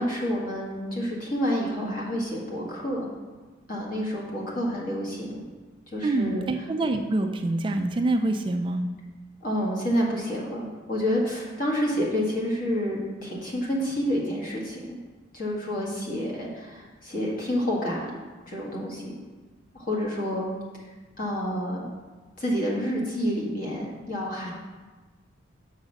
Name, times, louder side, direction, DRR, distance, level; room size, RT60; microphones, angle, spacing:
voice 1, 0.0-3.1 3.7-5.4 5.9-6.4 9.4-15.0 15.3-18.1 18.5-19.1 19.7-20.5 20.8-20.9 21.2-21.8 22.4-24.5, equal, 45° left, -4 dB, 1.7 m, -29 dB
voice 2, 6.0-8.9, right 2 dB, 25° right, 5 dB, 0.3 m, -26 dB
6.4 x 4.8 x 6.3 m, 1.3 s
head